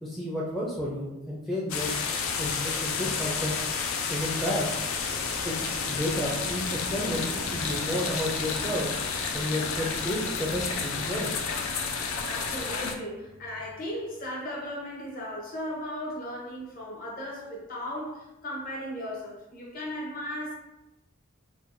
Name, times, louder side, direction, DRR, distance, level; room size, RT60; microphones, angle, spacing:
voice 1, 0.0-1.9 2.4-3.7 4.1-4.7 5.4-8.9 9.3-11.3, left 1 dB, ahead, -6 dB, 0.4 m, -31 dB
sound 1, 1.7-12.9, left 5 dB, 85° left, 0.4 m, -31 dB
voice 2, 11.9-20.5, equal, 45° left, -3 dB, 0.9 m, -36 dB
4.4 x 2.2 x 2.5 m, 0.92 s
head